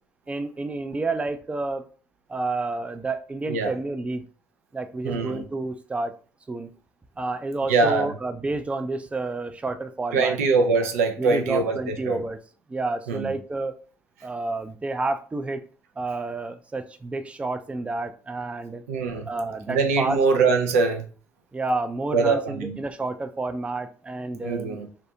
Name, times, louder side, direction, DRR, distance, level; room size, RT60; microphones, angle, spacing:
voice 1, 0.3-1.9 2.3-4.2 4.7-6.1 6.5-6.7 7.2-10.4 11.2-12.4 12.7-13.7 14.2-15.6 16.0-18.8 19.3-20.2 21.5-24.7, right 3 dB, 15° right, 9 dB, 0.3 m, -30 dB
voice 2, 5.0-5.4 7.7-8.1 10.1-11.8 12.1-12.2 13.1-13.3 18.9-19.3 19.7-21.1 22.1-22.8 24.4-24.9, right 4 dB, 85° right, 4 dB, 0.4 m, -22 dB
2.3 x 2.2 x 2.7 m, 0.39 s
hypercardioid pair, 55°, 8 cm